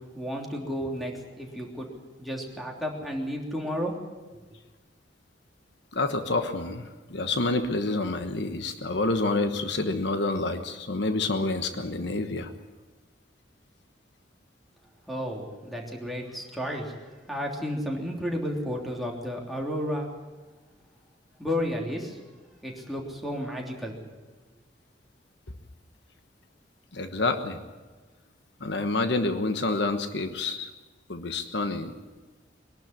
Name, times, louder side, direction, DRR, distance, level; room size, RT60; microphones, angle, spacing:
voice 1, 0.1-3.9 15.1-16.9 17.3-20.1 21.4-22.2 22.6-24.0, equal, ahead, -2 dB, 3.3 m, -32 dB
voice 2, 5.9-12.5 26.9-27.6 28.6-30.7 31.1-31.9, left 2 dB, 70° left, 8 dB, 1.2 m, -28 dB
22.5 x 12.0 x 10.0 m, 1.3 s
head